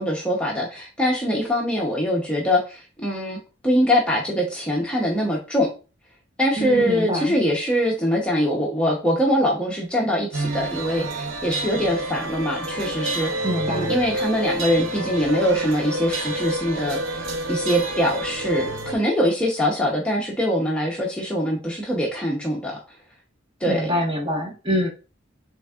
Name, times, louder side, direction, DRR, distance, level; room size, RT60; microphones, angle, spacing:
voice 1, 0.0-3.4 3.6-5.7 6.4-13.3 13.7-22.8 23.6-23.9, equal, 5° left, -3 dB, 0.8 m, -23 dB
voice 2, 6.6-7.3 13.4-13.9 23.7-24.9, equal, 25° right, 0 dB, 1.3 m, -25 dB
millennium clock, 10.3-18.9, right 1 dB, 70° right, 0.8 m, -28 dB
6.1 x 3.6 x 2.4 m, 0.33 s
head